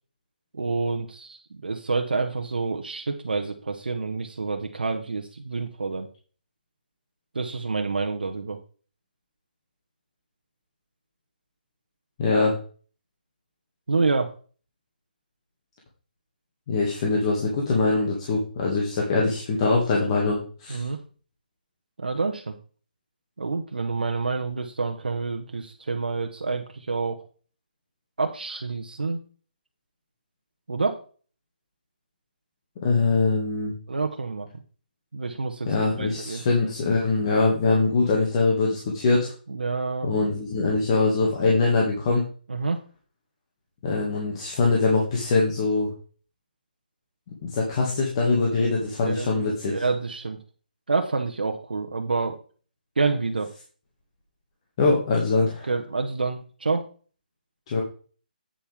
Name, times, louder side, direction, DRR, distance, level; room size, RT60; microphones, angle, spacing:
voice 1, 0.5-6.1 7.3-8.6 13.9-14.3 20.7-21.0 22.0-22.5 23.4-27.2 28.2-29.2 30.7-31.0 33.9-34.5 35.1-36.4 39.5-40.1 42.5-42.8 49.0-49.3 49.7-50.4 50.9-52.4 53.0-53.5 55.6-56.8, right 4 dB, 80° right, 4 dB, 1.0 m, -28 dB
voice 2, 12.2-12.5 16.7-20.9 32.8-33.7 35.6-39.3 40.0-42.2 43.8-45.9 47.4-49.7 54.8-55.7 57.7-57.8, left 3 dB, 40° left, -2 dB, 2.1 m, -23 dB
8.7 x 7.1 x 3.6 m, 0.40 s
hypercardioid pair, 150°, 5 cm